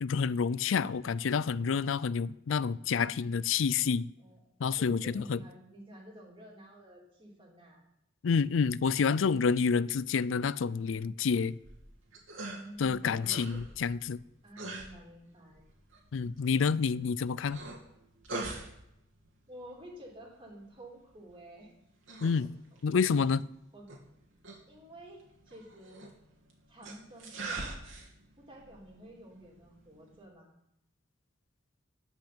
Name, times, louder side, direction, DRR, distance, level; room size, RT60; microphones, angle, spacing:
voice 1, 0.0-4.1 4.6-5.4 8.2-11.6 12.8-14.2 16.1-17.6 22.2-22.5 22.8-23.4, left 5 dB, 70° left, 0.4 m, -28 dB
voice 2, 4.2-7.8 12.4-13.7 14.4-15.7 19.5-21.7 22.7-23.0 23.7-23.8 24.7-26.1 26.7-27.8 28.4-30.5, right 1 dB, 25° right, 3.4 m, -51 dB
sound 1, 11.5-30.2, right 2 dB, 85° right, 2.7 m, -46 dB
13.0 x 6.0 x 8.7 m
head